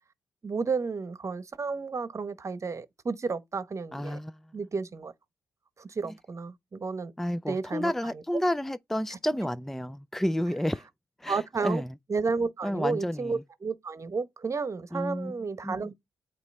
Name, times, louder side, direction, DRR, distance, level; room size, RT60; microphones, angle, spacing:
voice 1, 0.4-4.2 4.5-5.1 5.8-7.1 7.5-8.2 9.1-9.2 10.5-10.6 11.3-11.8 12.1-15.9, right 4 dB, 40° right, 1.0 m, -32 dB
voice 2, 3.9-4.4 7.2-10.8 11.2-11.9 12.6-13.4 14.9-15.3 15.6-15.9, equal, 5° left, 0.4 m, -30 dB
8.3 x 3.0 x 4.2 m
supercardioid pair, 55°, 8 cm